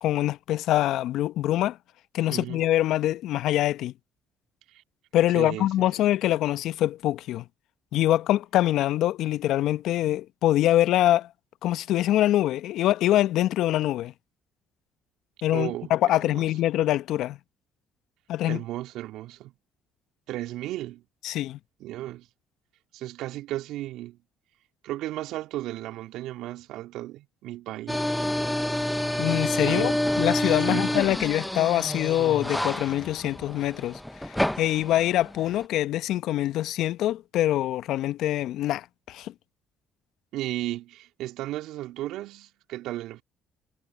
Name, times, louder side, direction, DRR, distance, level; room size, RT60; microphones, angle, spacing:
voice 1, 0.0-1.8 2.1-3.9 5.1-7.4 7.9-11.3 11.6-14.1 15.4-17.4 18.3-18.6 21.2-21.6 29.2-39.3, left 13 dB, 70° left, 0.9 m, -24 dB
voice 2, 2.3-2.6 4.7-4.8 5.3-5.9 15.5-15.9 16.2-16.5 18.4-19.5 20.3-21.0 21.8-22.3 22.9-24.2 24.8-28.1 29.6-30.0 30.6-31.0 40.3-43.2, right 15 dB, 70° right, 2.6 m, -35 dB
sound 1, 27.9-35.6, left 1 dB, 5° left, 0.8 m, -28 dB
hypercardioid pair, 55°, 0 cm